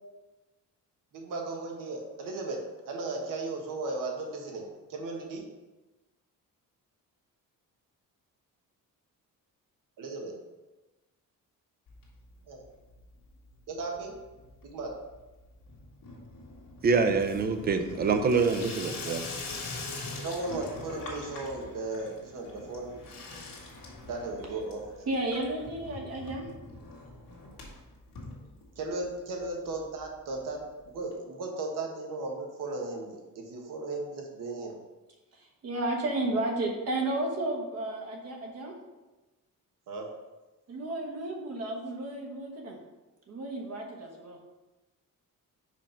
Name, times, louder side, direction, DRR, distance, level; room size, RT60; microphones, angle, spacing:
voice 1, 1.1-5.4 10.0-10.3 12.5-12.6 13.7-14.1 14.6-14.9 20.2-23.0 24.0-25.1 28.8-34.7 39.9-40.1, right 2 dB, 70° right, 1 dB, 1.3 m, -36 dB
Water tap faucet / Sink (filling or washing), 11.9-12.7 12.9-13.5 13.8-29.0 29.4-29.5 29.7-29.8 30.0-30.1 31.1-31.2, left 3 dB, 90° left, 1.7 m, -43 dB
voice 2, 16.8-19.2, right 4 dB, 30° right, 7 dB, 0.5 m, -25 dB
voice 3, 25.1-26.5 28.4-28.5 35.3-38.7 40.7-42.8 43.3-44.4, right 2 dB, 50° right, 1 dB, 1.2 m, -33 dB
5.2 x 5.0 x 4.4 m, 1.1 s
cardioid pair, 180°, 33 cm